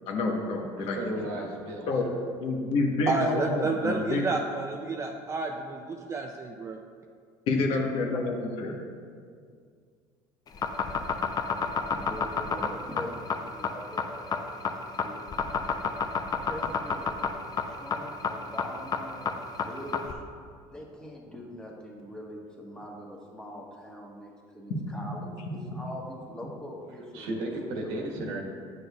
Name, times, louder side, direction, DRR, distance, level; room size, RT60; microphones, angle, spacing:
voice 1, 0.1-1.0 1.9-2.0 2.4-4.2 7.5-8.8, left 3 dB, 65° left, 1 dB, 1.1 m, -28 dB
voice 2, 0.8-2.2 27.1-28.4, right 1 dB, 80° right, 0 dB, 1.3 m, -35 dB
voice 3, 3.1-6.8, right 3 dB, 25° right, 3 dB, 0.4 m, -30 dB
sound 1, 10.5-20.1, left 6 dB, 35° left, 0.5 m, -29 dB
voice 4, 11.7-14.7 15.0-15.4 16.4-17.1 17.7-20.2 20.7-28.0, equal, 5° left, -3 dB, 1.3 m, -42 dB
9.8 x 6.3 x 2.4 m, 2.1 s
supercardioid pair, 105°, 11 cm